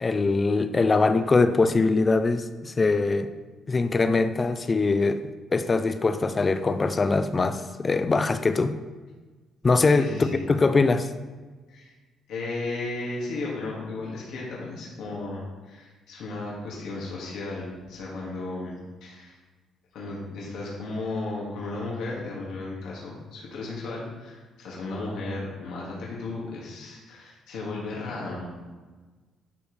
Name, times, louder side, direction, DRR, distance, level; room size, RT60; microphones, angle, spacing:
voice 1, 0.0-3.3 3.7-5.2 5.5-8.7 9.6-10.1 10.5-11.1, left 3 dB, 20° left, 11 dB, 0.4 m, -22 dB
voice 2, 10.0-10.5 11.7-11.9 12.3-19.4 19.9-28.5, left 2 dB, 70° left, -4 dB, 1.9 m, -35 dB
11.0 x 5.2 x 3.2 m, 1.3 s
cardioid pair, 175°, 0 cm